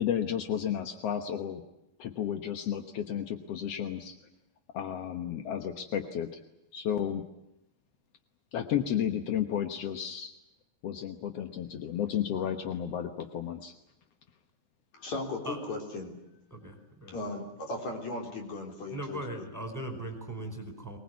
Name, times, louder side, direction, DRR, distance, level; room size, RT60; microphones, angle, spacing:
voice 1, 0.0-1.6 2.0-4.2 4.7-6.3 6.7-7.2 8.5-10.3 10.8-13.7, left 9 dB, 65° left, 7 dB, 1.6 m, -32 dB
voice 2, 14.9-16.1 17.1-19.5, left 2 dB, 50° left, 2 dB, 4.8 m, -37 dB
voice 3, 16.5-17.2 18.9-21.0, right 1 dB, 5° right, 4 dB, 4.5 m, -39 dB
24.0 x 20.5 x 9.5 m, 0.88 s
omnidirectional pair, 4.3 m